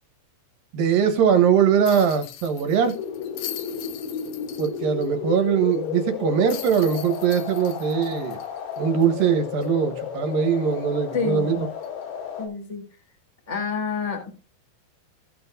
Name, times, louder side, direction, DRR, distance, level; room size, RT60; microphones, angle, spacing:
voice 1, 0.7-3.0 4.6-8.4 8.8-11.7, right 7 dB, 65° right, 7 dB, 2.8 m, -21 dB
sound 1, 1.8-5.1 5.4-5.5 6.5-9.2 9.6-9.7 11.8-12.0, left 11 dB, 90° left, 1.7 m, -40 dB
sound 2, 2.9-12.5, left 8 dB, 70° left, 4.7 m, -33 dB
voice 2, 11.1-11.4 12.4-12.8 13.5-14.3, left 4 dB, 10° left, 1 dB, 3.3 m, -27 dB
15.5 x 7.9 x 2.6 m, 0.32 s
omnidirectional pair, 4.9 m